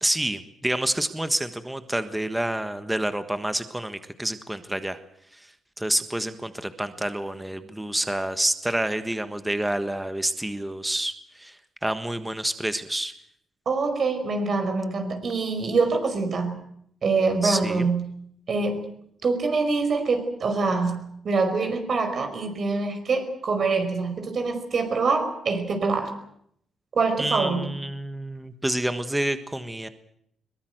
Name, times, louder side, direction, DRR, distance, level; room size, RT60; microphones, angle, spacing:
voice 1, 0.0-5.0 5.3-5.5 5.8-13.1 17.4-17.9 27.2-29.9, right 1 dB, 5° right, 10 dB, 1.4 m, -28 dB
voice 2, 13.7-16.6 17.0-18.0 18.5-18.9 19.2-26.1 26.9-27.7, right 4 dB, 50° right, 7 dB, 5.2 m, -25 dB
22.5 x 21.5 x 7.9 m, 0.70 s
cardioid pair, 125°, 0 cm